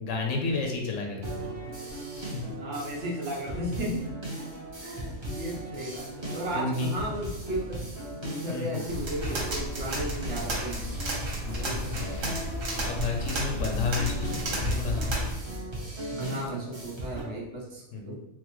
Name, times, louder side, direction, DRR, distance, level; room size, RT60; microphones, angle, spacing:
voice 1, 0.0-1.5 2.1-2.4 6.5-6.9 8.5-8.8 11.4-12.3 12.9-15.1 17.9-18.1, left 4 dB, 85° left, 2 dB, 1.0 m, -32 dB
sound 1, 1.2-17.2, right 1 dB, 25° right, 0.7 m, -38 dB
voice 2, 2.6-4.1 4.4-4.5 4.8-7.8 8.2-10.9 16.1-18.1, equal, 70° right, -2 dB, 1.1 m, -34 dB
sound 2, 8.9-15.3, equal, 85° right, 1.4 m, -32 dB
4.0 x 2.1 x 2.9 m, 0.89 s
omnidirectional pair, 1.3 m